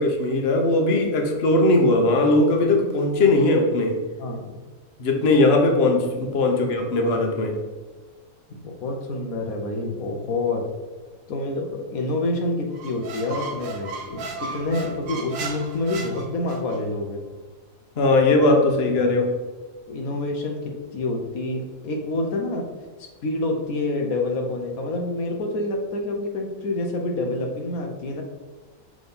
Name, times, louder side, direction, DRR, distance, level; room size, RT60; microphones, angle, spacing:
voice 1, 0.0-4.0 5.0-7.6 18.0-19.3, left 2 dB, 50° left, 2 dB, 1.2 m, -19 dB
voice 2, 4.2-4.6 6.4-6.5 8.5-10.7 11.3-17.2 19.9-22.7 23.2-28.2, left 2 dB, 90° left, 2 dB, 1.4 m, -27 dB
Squeak, 12.7-16.8, right 3 dB, 80° right, 1.3 m, -35 dB
6.0 x 3.8 x 5.4 m, 1.3 s
omnidirectional pair, 1.4 m